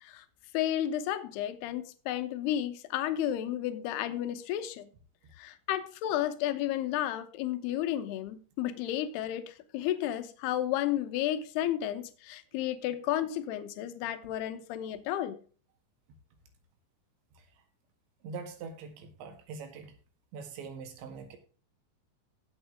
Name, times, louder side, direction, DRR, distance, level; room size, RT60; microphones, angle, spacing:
voice 1, 0.5-4.9 5.4-15.4, left 12 dB, 75° left, 2.8 m, -32 dB
voice 2, 18.2-19.9 20.3-21.4, right 5 dB, 90° right, 4.2 m, -43 dB
16.5 x 6.3 x 3.5 m
omnidirectional pair, 5.0 m